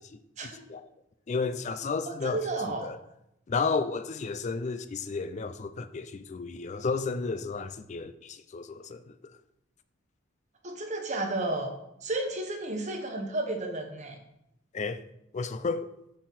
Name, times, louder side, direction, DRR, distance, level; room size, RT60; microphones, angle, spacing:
voice 1, 1.3-2.4 2.8-3.0 3.5-9.0 14.7-15.0 15.3-15.9, left 4 dB, 35° left, 0.4 m, -32 dB
voice 2, 2.1-2.9 10.6-11.7 12.0-14.2, right 2 dB, 35° right, 1.0 m, -32 dB
5.5 x 4.3 x 5.9 m
head